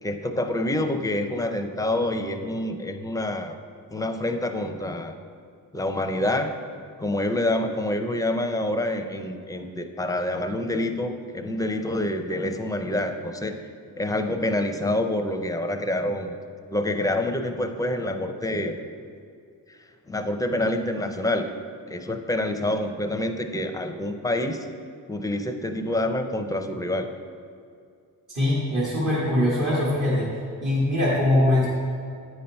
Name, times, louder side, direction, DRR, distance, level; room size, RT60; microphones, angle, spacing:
voice 1, 0.0-3.5 3.9-5.1 5.7-6.5 7.0-13.6 14.0-16.4 16.7-18.8 19.7-19.8 20.1-21.5 21.9-24.7 25.1-27.1, left 1 dB, 10° left, 6 dB, 0.5 m, -27 dB
voice 2, 28.3-30.3 30.6-31.7, left 1 dB, 55° right, -7 dB, 1.6 m, -22 dB
9.1 x 5.6 x 4.4 m, 2.4 s
wide cardioid pair, 120°, 35 cm